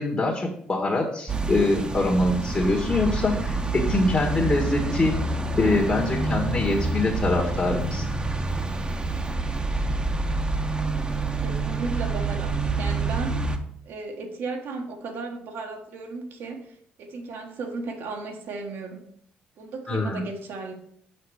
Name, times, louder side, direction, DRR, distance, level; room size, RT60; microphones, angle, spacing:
voice 1, 0.0-5.2 5.6-8.1 19.9-20.2, left 2 dB, 35° left, 0 dB, 1.7 m, -24 dB
sound 1, 1.3-13.6, right 3 dB, 25° right, 1.1 m, -27 dB
voice 2, 11.4-13.5 13.8-19.0 19.6-20.7, right 3 dB, 65° right, 3 dB, 1.5 m, -35 dB
5.9 x 5.8 x 4.9 m, 0.68 s
hypercardioid pair, 55°, 4 cm